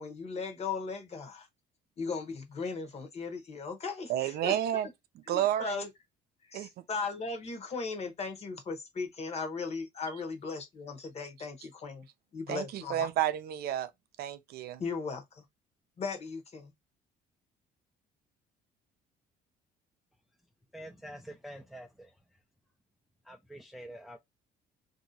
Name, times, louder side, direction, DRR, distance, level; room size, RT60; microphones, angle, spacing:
voice 1, 0.0-1.5 2.0-4.6 5.3-5.9 6.5-12.1 12.3-13.1 14.8-15.4 16.0-16.7, left 4 dB, 40° left, 1.0 m, -37 dB
voice 2, 4.1-4.9 5.3-5.8 6.5-6.7 12.5-13.9 14.2-14.8, right 12 dB, 70° right, 0.5 m, -31 dB
voice 3, 20.7-22.2 23.2-24.2, right 1 dB, ahead, 0.4 m, -46 dB
2.8 x 2.7 x 2.7 m
cardioid pair, 110°, 17 cm